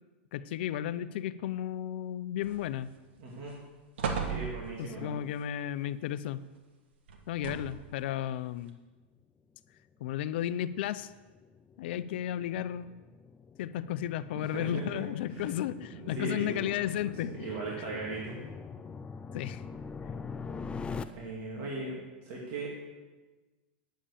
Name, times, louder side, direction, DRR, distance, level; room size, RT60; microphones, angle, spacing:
voice 1, 0.3-2.9 4.8-6.4 7.3-8.8 10.0-11.1 11.8-12.9 13.6-17.5 19.3-19.6, left 11 dB, 70° left, 15 dB, 0.5 m, -34 dB
sound 1, 2.4-3.0 3.4-3.5 4.0-5.0 7.1-7.9 8.7-8.8, right 6 dB, 80° right, 1.6 m, -36 dB
voice 2, 3.2-3.5 4.2-5.2 14.3-15.0 15.3-15.5 15.9-18.4 20.9-22.7, right 2 dB, 50° right, -4 dB, 2.9 m, -38 dB
sound 2, 9.9-21.0, left 5 dB, 20° left, 0.5 m, -44 dB
10.0 x 7.3 x 6.7 m, 1.2 s
hypercardioid pair, 120°, 6 cm